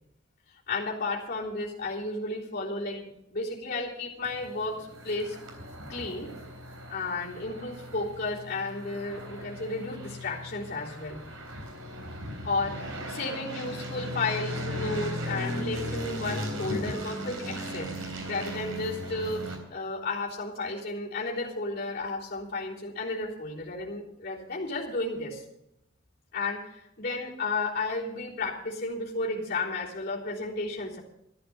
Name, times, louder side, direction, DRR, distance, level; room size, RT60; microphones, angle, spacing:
voice 1, 0.7-5.4 5.9-6.3 6.9-11.2 12.4-25.4 26.3-31.0, left 3 dB, 45° left, -7 dB, 3.6 m, -33 dB
sound 1, 4.2-19.6, equal, 80° right, 3.6 m, -37 dB
13.5 x 11.5 x 5.8 m, 0.81 s
head